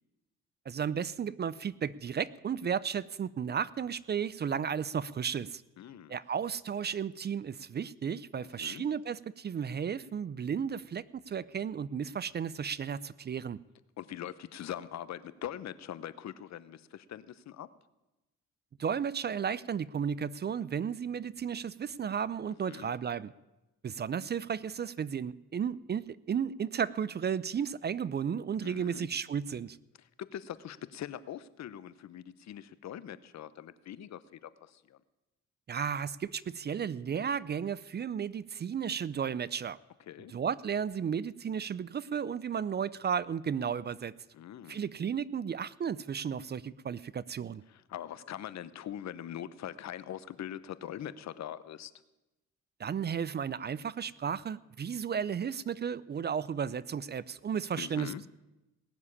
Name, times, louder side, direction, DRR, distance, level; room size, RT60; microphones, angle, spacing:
voice 1, 0.7-5.6 6.1-13.6 18.8-23.3 23.8-29.8 35.7-39.8 40.3-44.1 44.7-47.6 52.8-58.1, right 7 dB, 35° right, 20 dB, 0.5 m, -34 dB
voice 2, 5.8-6.2 8.6-8.9 14.0-17.7 22.7-22.9 28.6-29.1 30.2-35.0 40.1-40.3 44.3-44.8 47.7-51.9 57.8-58.2, left 10 dB, 65° left, 15 dB, 0.9 m, -42 dB
18.0 x 7.1 x 9.8 m, 1.0 s
cardioid pair, 90°, 30 cm